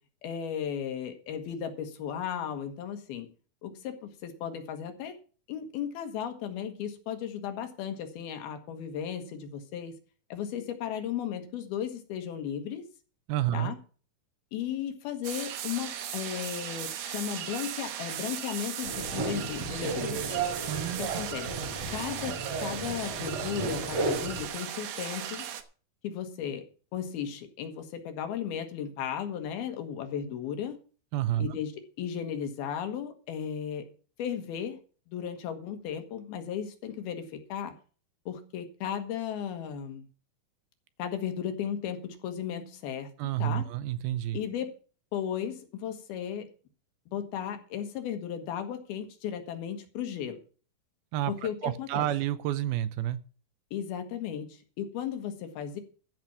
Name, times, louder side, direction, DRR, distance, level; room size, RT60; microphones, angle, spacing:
voice 1, 0.2-3.3 3.6-5.2 5.5-9.9 10.3-12.8 13.5-13.8 14.5-20.4 21.0-21.5 21.9-22.4 22.6-25.5 26.0-26.7 26.9-30.8 31.4-31.7 32.0-33.9 34.2-34.8 35.1-37.7 38.3-40.1 41.0-43.1 43.4-43.7 44.3-44.7 45.1-46.5 47.1-50.4 51.3-52.1 53.7-55.8, left 9 dB, 80° left, 3.3 m, -35 dB
voice 2, 13.3-13.7 20.7-21.2 31.1-31.6 43.2-44.4 51.1-51.3 51.6-53.2, right 12 dB, 80° right, 2.6 m, -29 dB
sound 1, 15.2-25.6, right 9 dB, 65° right, 2.0 m, -37 dB
sound 2, 18.8-24.5, right 3 dB, 45° right, 3.4 m, -34 dB
13.5 x 6.1 x 7.0 m
omnidirectional pair, 4.5 m